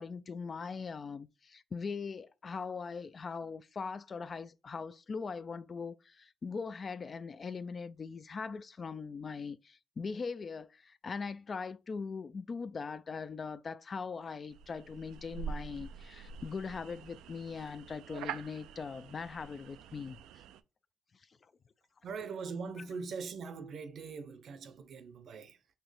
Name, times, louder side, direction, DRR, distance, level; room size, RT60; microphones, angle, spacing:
voice 1, 0.0-20.4 22.8-22.9, left 5 dB, 40° left, 0.3 m, -41 dB
sound 1, 14.5-20.6, right 7 dB, 90° right, 0.3 m, -46 dB
voice 2, 22.0-25.7, right 5 dB, 65° right, 0.7 m, -42 dB
4.4 x 2.9 x 3.3 m
cardioid pair, 90°, 0 cm